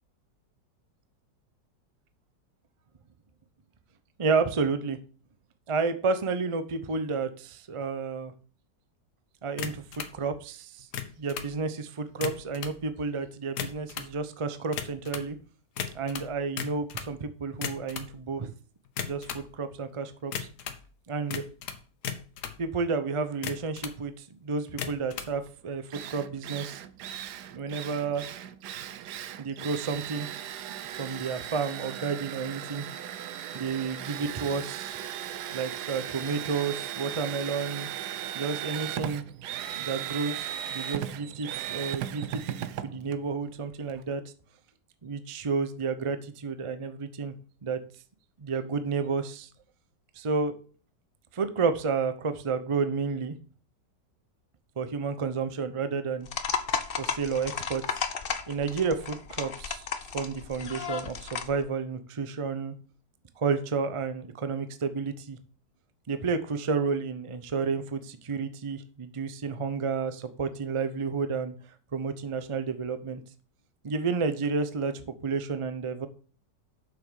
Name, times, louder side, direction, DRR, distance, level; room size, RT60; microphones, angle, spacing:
voice 1, 4.2-5.0 5.7-8.3 9.4-10.9 11.2-15.4 15.9-18.5 19.0-20.5 21.1-21.4 22.6-26.8 27.5-28.2 29.4-30.3 31.0-32.8 33.5-35.0 35.5-37.9 38.3-39.2 39.7-44.2 45.0-47.3 47.6-47.8 48.4-49.5 50.2-50.5 51.3-53.4 54.8-56.3 57.0-58.0 58.5-59.9 60.1-62.7 63.4-65.4 66.1-71.6 71.9-73.2 73.8-76.1, right 5 dB, 45° right, 10 dB, 0.4 m, -31 dB
sound 1, 9.6-10.2 10.8-11.5 12.1-12.8 13.4-14.1 14.7-15.3 15.8-17.1 17.5-18.1 18.9-19.5 20.3-20.8 21.3-22.6 23.3-24.0 24.7-25.3, left 8 dB, 70° left, 1.5 m, -36 dB
Drill, 25.5-25.6 25.9-44.0, right 11 dB, 70° right, 1.2 m, -37 dB
sound 2, 56.3-61.6, left 6 dB, 50° left, 0.7 m, -34 dB
7.6 x 6.2 x 6.4 m, 0.41 s
omnidirectional pair, 1.9 m